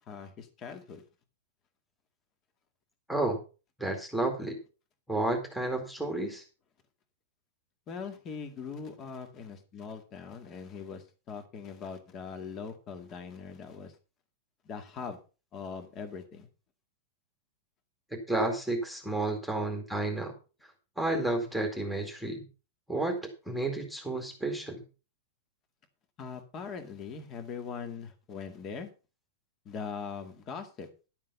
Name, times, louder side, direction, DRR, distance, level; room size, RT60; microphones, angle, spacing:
voice 1, 0.1-1.0 7.9-14.0 14.6-15.2 15.5-16.5 26.2-28.9 29.7-30.9, left 6 dB, 25° left, 7 dB, 2.1 m, -41 dB
voice 2, 3.1-3.4 3.8-4.6 5.1-6.4 18.1-20.3 21.0-22.4 22.9-23.2 23.5-24.8, right 2 dB, ahead, 2 dB, 2.2 m, -31 dB
12.0 x 7.4 x 5.5 m, 0.33 s
supercardioid pair, 160°, 0 cm